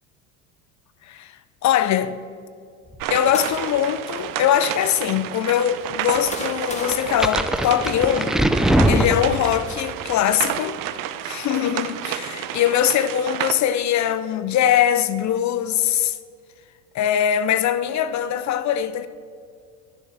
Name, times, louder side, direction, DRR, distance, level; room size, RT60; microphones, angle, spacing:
voice 1, 1.6-2.2 3.1-8.4 8.8-10.8 11.2-16.2 16.9-19.1, left 10 dB, 40° left, 0.6 m, -22 dB
sound 1, 2.8-4.0 4.8-4.9 5.8-8.1, left 2 dB, 15° left, 1.8 m, -36 dB
sound 2, 3.0-13.5, right 11 dB, 50° right, 0.8 m, -31 dB
sound 3, 6.9-9.8, right 1 dB, ahead, 0.3 m, -21 dB
11.0 x 7.1 x 6.1 m
hypercardioid pair, 80°, 44 cm